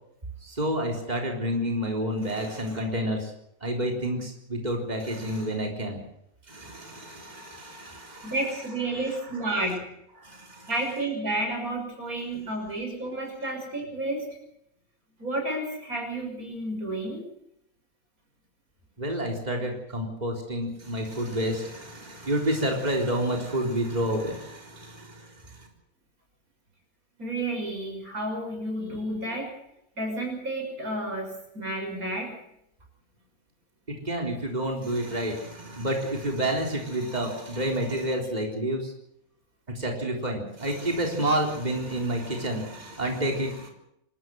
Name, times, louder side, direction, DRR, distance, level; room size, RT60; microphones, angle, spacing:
voice 1, 0.4-3.3 3.6-6.0 6.5-8.3 10.2-10.7 19.0-25.7 33.9-38.9 39.8-43.7, right 1 dB, 30° right, 1 dB, 3.9 m, -29 dB
voice 2, 8.2-9.9 10.7-14.2 15.2-17.2 27.2-29.5 30.0-32.4, right 1 dB, 85° right, 2 dB, 6.6 m, -31 dB
26.5 x 13.5 x 7.9 m, 0.78 s
omnidirectional pair, 1.5 m